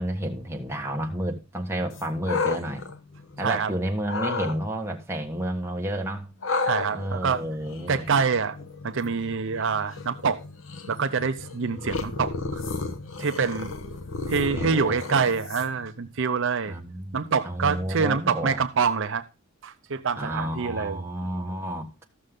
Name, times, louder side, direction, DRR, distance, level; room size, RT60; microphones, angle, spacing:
voice 1, 0.0-2.8 3.4-6.3 6.9-8.1 14.3-15.0 16.7-18.6 20.2-21.9, right 1 dB, 10° right, 1.4 m, -31 dB
sound 1, 1.9-3.6 4.0-4.6 6.4-15.9, left 3 dB, 70° left, 1.0 m, -33 dB
voice 2, 6.6-7.4 7.9-8.6 8.8-10.4 10.9-12.6 13.2-13.7 14.3-16.7 17.1-19.2 19.6-21.0, right 5 dB, 65° right, 0.7 m, -26 dB
14.0 x 6.6 x 3.7 m
head